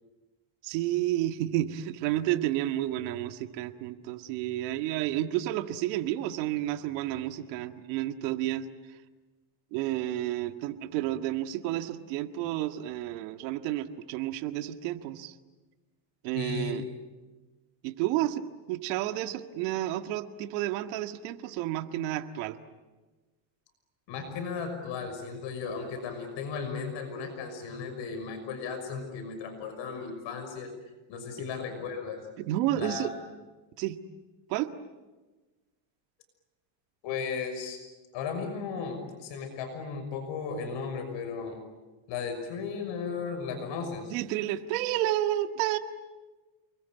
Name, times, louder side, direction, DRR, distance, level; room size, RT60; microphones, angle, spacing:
voice 1, 0.6-8.7 9.7-15.4 16.2-16.8 17.8-22.6 32.4-33.1 33.8-34.0 34.5-34.7 44.1-45.8, right 14 dB, 85° right, 8 dB, 1.9 m, -31 dB
voice 2, 16.3-16.7 24.1-30.7 31.1-32.2 32.7-33.1 37.0-37.8 38.1-41.6 42.1-44.1, left 5 dB, 60° left, 7 dB, 6.2 m, -35 dB
29.5 x 22.0 x 9.3 m, 1.2 s
cardioid pair, 125°, 50 cm